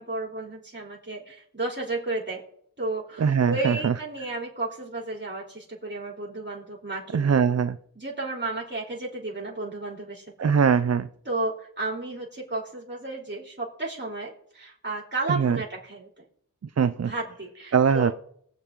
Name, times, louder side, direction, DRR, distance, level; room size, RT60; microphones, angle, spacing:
voice 1, 0.0-2.4 2.8-7.4 8.0-10.5 11.3-16.2 17.0-18.1, right 2 dB, 35° right, -3 dB, 3.7 m, -33 dB
voice 2, 3.2-3.9 7.1-7.8 10.4-11.1 15.3-15.6 16.8-17.1 17.7-18.1, right 6 dB, 50° right, 11 dB, 0.6 m, -21 dB
22.5 x 8.1 x 3.8 m, 0.65 s
wide cardioid pair, 60°, 33 cm